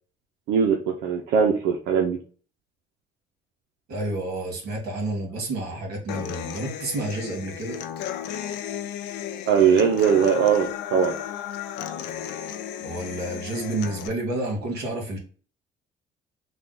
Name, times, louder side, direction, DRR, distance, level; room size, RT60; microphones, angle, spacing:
voice 1, 0.5-2.2 9.5-11.2, right 7 dB, 90° right, 1 dB, 0.6 m, -20 dB
voice 2, 3.9-7.8 12.8-15.2, right 2 dB, 70° right, 1 dB, 1.7 m, -30 dB
Human voice / Acoustic guitar, 6.1-14.1, left 10 dB, 85° left, 0.5 m, -34 dB
3.4 x 2.3 x 3.9 m, 0.41 s
cardioid pair, 110°, 17 cm